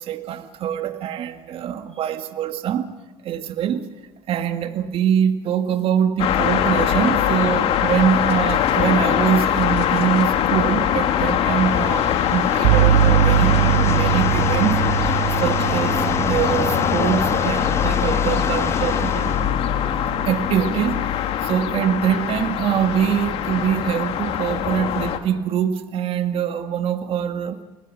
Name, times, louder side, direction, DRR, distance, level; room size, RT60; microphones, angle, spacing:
voice 1, 0.0-2.9 3.2-3.9 4.3-14.8 15.4-19.5 20.3-21.0 21.4-27.6, right 9 dB, 55° right, 7 dB, 1.8 m, -23 dB
sound 1, 6.2-25.2, left 10 dB, 60° left, 2.2 m, -22 dB
sound 2, 11.5-19.5, left 4 dB, 25° left, 1.1 m, -29 dB
sound 3, 12.6-20.4, right 11 dB, 80° right, 1.6 m, -22 dB
30.0 x 20.5 x 6.3 m, 1.1 s
hypercardioid pair, 80°, 11 cm